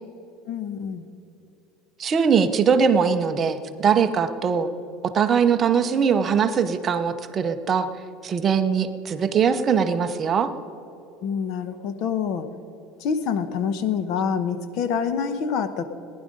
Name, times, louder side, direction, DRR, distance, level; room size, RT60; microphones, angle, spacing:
voice 1, 0.5-1.1 11.2-12.4 13.0-15.9, left 6 dB, 45° left, 11 dB, 1.0 m, -26 dB
voice 2, 2.0-4.7 5.0-7.9 8.2-10.5, right 6 dB, 20° right, 8 dB, 0.7 m, -21 dB
19.5 x 10.5 x 5.3 m, 2.9 s
cardioid pair, 175°, 0 cm